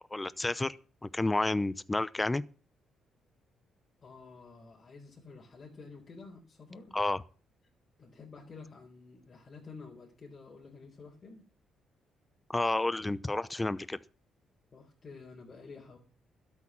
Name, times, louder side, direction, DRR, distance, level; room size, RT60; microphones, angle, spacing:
voice 1, 0.1-0.8 1.0-2.4 6.9-7.2 12.5-14.0, left 2 dB, 15° left, 0.6 m, -30 dB
voice 2, 4.0-6.9 8.0-11.5 14.7-16.0, left 4 dB, 40° left, 4.2 m, -50 dB
13.0 x 8.4 x 7.4 m
cardioid pair, 90°, 0 cm